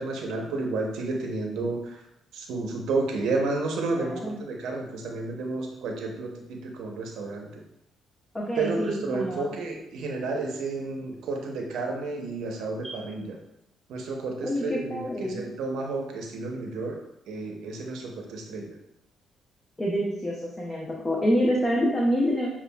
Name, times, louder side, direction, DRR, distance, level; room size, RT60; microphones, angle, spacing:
voice 1, 0.0-2.0 2.3-7.6 8.6-13.4 13.9-17.0 17.3-18.7, right 3 dB, 85° right, 1 dB, 0.7 m, -31 dB
voice 2, 3.9-4.4 8.3-9.5 14.4-15.4 19.8-22.5, equal, 20° left, -2 dB, 0.6 m, -27 dB
7.0 x 2.4 x 2.2 m, 0.85 s
cardioid pair, 90°, 0 cm